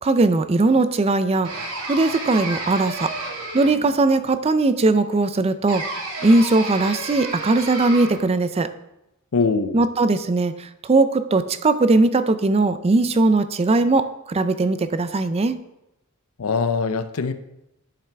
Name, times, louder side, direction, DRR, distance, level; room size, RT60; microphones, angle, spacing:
voice 1, 0.0-3.1 3.5-5.8 6.2-8.7 9.7-15.6, right 3 dB, 25° right, 12 dB, 0.4 m, -19 dB
sound 1, 1.4-4.0 5.7-8.3, right 2 dB, 85° right, 2.0 m, -31 dB
voice 2, 9.3-9.8 16.4-17.3, left 4 dB, 70° left, 10 dB, 0.6 m, -22 dB
11.5 x 5.9 x 3.4 m, 0.91 s
head